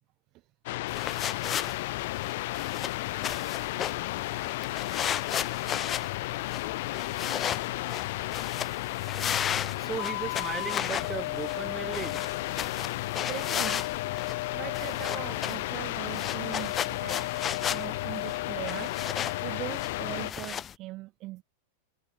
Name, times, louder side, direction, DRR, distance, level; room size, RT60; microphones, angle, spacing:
sound 1, 0.7-20.3, left 18 dB, 50° left, 0.6 m, -33 dB
sound 2, 0.9-20.7, left 9 dB, 25° left, 1.0 m, -35 dB
sound 3, 3.7-16.5, right 11 dB, 60° right, 7.0 m, -61 dB
voice 1, 9.8-12.2 13.2-13.3, right 6 dB, 20° right, 1.7 m, -37 dB
voice 2, 13.3-17.3 17.7-21.4, right 19 dB, 40° right, 0.5 m, -41 dB
figure-of-eight pair, 90°, 0 cm